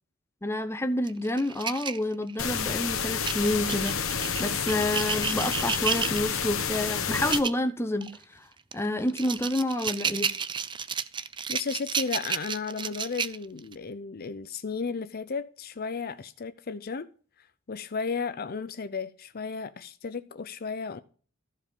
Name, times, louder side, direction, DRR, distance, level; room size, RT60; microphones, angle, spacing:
voice 1, 0.4-8.1 8.7-10.3, left 1 dB, 10° left, 0.8 m, -29 dB
sound 1, 1.1-2.7 3.2-6.5 7.1-7.6 8.0-8.2 8.7-13.7, right 6 dB, 25° right, 0.4 m, -32 dB
sound 2, 2.4-7.4, left 6 dB, 80° left, 1.3 m, -29 dB
voice 2, 11.5-17.1 17.7-21.0, left 5 dB, 45° left, 0.6 m, -34 dB
14.0 x 5.1 x 5.3 m
head